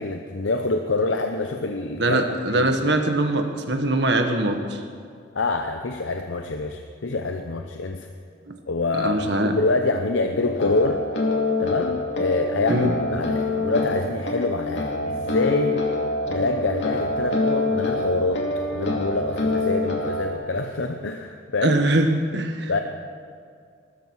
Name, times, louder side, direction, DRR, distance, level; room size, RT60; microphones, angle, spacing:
voice 1, 0.0-2.2 2.5-2.7 5.3-8.1 8.7-11.0 11.6-15.9 16.3-18.5 18.7-21.8 22.7-22.8, left 3 dB, 90° left, 5 dB, 0.8 m, -26 dB
voice 2, 2.0-4.8 8.5-8.6 8.9-9.5 12.7-12.9 21.6-22.8, right 1 dB, 65° right, 5 dB, 1.5 m, -22 dB
sound 1, 10.3-20.3, left 2 dB, 70° left, 2.4 m, -26 dB
20.0 x 13.0 x 4.8 m, 2.2 s
head